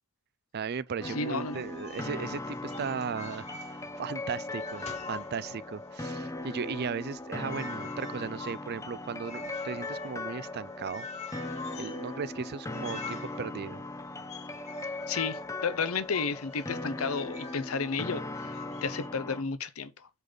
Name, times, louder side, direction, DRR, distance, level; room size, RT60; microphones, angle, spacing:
voice 1, 0.5-3.5 4.0-11.1 11.8-13.8, right 6 dB, 50° right, 0.4 m, -36 dB
voice 2, 1.0-1.6 15.1-20.1, left 5 dB, 85° left, 0.8 m, -32 dB
sound 1, 1.0-19.4, left 2 dB, 15° left, 0.6 m, -39 dB
sound 2, 1.2-4.2 4.4-5.9 6.3-17.8 18.3-19.1, left 4 dB, 30° left, 1.3 m, -46 dB
8.2 x 4.0 x 5.2 m
head